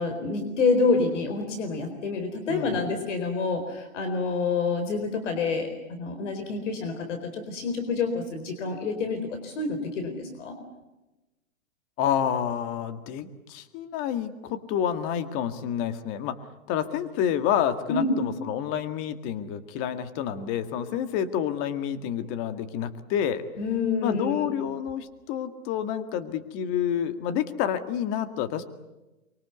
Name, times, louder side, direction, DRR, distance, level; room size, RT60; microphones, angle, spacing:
voice 1, 0.0-10.6 17.9-18.2 23.6-24.5, left 4 dB, 60° left, 7 dB, 4.4 m, -28 dB
voice 2, 2.5-2.8 12.0-16.4 16.7-23.4 24.0-28.6, left 9 dB, 30° left, 9 dB, 1.9 m, -29 dB
24.5 x 23.5 x 8.2 m, 1.0 s
hypercardioid pair, 135°, 40 cm